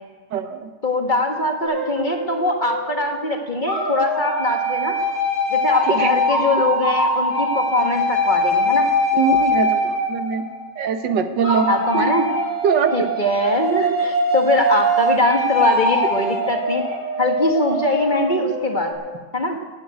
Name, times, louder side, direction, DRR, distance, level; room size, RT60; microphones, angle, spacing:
voice 1, 0.3-0.7 5.9-6.1 9.1-10.5 10.8-11.7 11.9-12.1 12.6-13.1, right 6 dB, 80° right, 8 dB, 1.8 m, -22 dB
voice 2, 0.8-5.0 5.5-8.9 11.7-12.3 12.9-16.8 17.2-18.9 19.3-19.6, left 1 dB, 30° left, 3 dB, 1.5 m, -22 dB
sound 1, 1.6-3.2 3.7-10.8 11.4-18.9, left 1 dB, 35° right, 6.8 m, -22 dB
17.0 x 8.6 x 9.2 m, 1.3 s
omnidirectional pair, 1.9 m